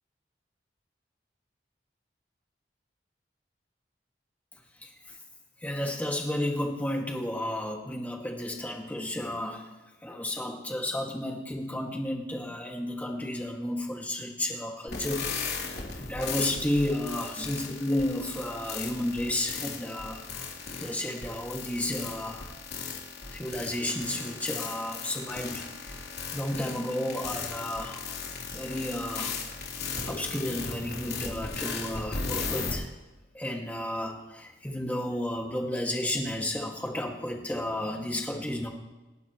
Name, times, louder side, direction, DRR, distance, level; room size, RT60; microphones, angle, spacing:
voice 1, 4.8-5.2 5.6-9.7 10.0-20.2 20.8-22.5 23.3-29.4 30.0-32.9 33.3-38.7, left 1 dB, 10° left, 0 dB, 2.2 m, -32 dB
sound 1, 14.9-32.7, left 5 dB, 60° left, 3.5 m, -36 dB
29.0 x 12.5 x 3.2 m, 1.1 s
head